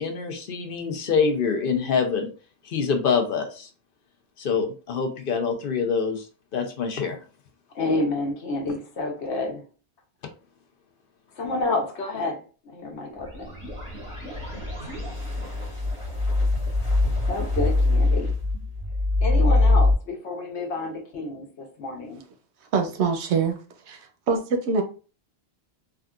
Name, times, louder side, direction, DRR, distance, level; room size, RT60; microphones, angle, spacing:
voice 1, 0.0-2.3 2.7-3.7 4.4-6.2 6.5-7.2, left 5 dB, 60° left, 5 dB, 0.7 m, -25 dB
voice 2, 7.7-9.6 11.4-13.6 14.8-14.9 17.3-18.3 19.2-22.2, left 2 dB, 85° left, 2 dB, 1.1 m, -29 dB
sound 1, 13.0-19.9, left 2 dB, 5° right, 1.6 m, -23 dB
voice 3, 22.7-23.6 23.9-24.0 24.3-24.8, right 5 dB, 85° right, 5 dB, 0.9 m, -23 dB
3.6 x 2.4 x 2.3 m, 0.36 s
omnidirectional pair, 1.1 m